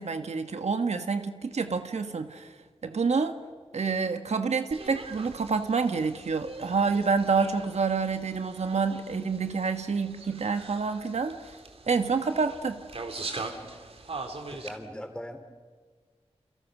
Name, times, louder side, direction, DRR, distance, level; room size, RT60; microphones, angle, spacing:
voice 1, 0.0-2.5 2.8-3.3 3.7-11.5 11.9-12.8, right 5 dB, 85° right, 8 dB, 1.4 m, -28 dB
sound 1, 4.7-14.8, right 3 dB, 65° right, 2.7 m, -42 dB
voice 2, 14.5-15.4, equal, 10° left, 7 dB, 3.0 m, -39 dB
28.5 x 27.5 x 6.2 m, 1.5 s
wide cardioid pair, 90°, 11 cm